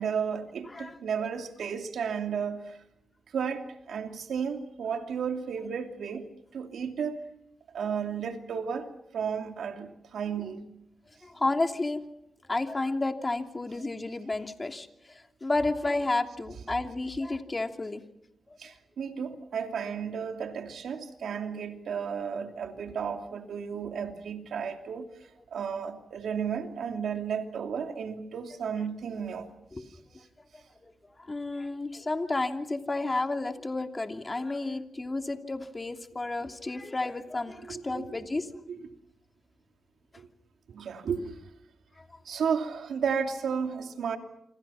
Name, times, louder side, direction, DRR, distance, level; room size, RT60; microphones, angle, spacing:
voice 1, 0.0-2.8 3.3-6.3 6.5-7.2 7.7-10.7 18.6-25.1 25.5-29.5 29.8-29.9 37.6-38.1 38.7-38.8 40.2-40.3 40.7-41.4 42.2-44.2, right 6 dB, 85° right, 2.9 m, -33 dB
voice 2, 11.2-12.0 12.5-18.0 29.7-29.8 30.8-30.9 31.3-38.5 42.0-42.1, left 2 dB, 30° left, 2.9 m, -31 dB
28.5 x 26.0 x 5.8 m
cardioid pair, 60°, 0 cm